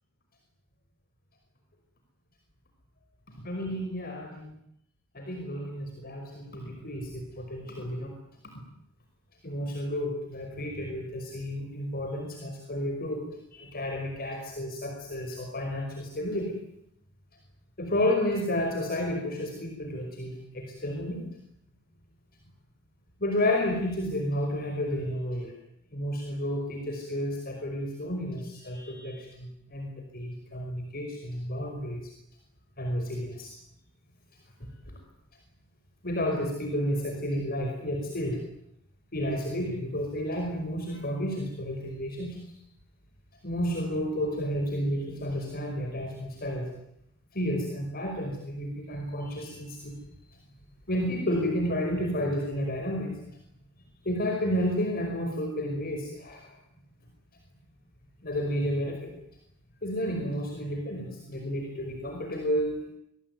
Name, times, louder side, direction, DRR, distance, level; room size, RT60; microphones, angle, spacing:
voice 1, 3.4-4.5 5.1-8.1 9.4-13.2 13.5-16.6 17.8-21.2 23.2-25.5 25.9-32.1 32.8-33.5 36.0-38.4 39.1-42.4 43.4-46.6 47.3-50.0 50.9-53.2 54.1-56.6 58.2-59.1 59.8-62.8, equal, 50° left, 2 dB, 5.4 m, -31 dB
27.0 x 21.5 x 9.6 m, 0.77 s
head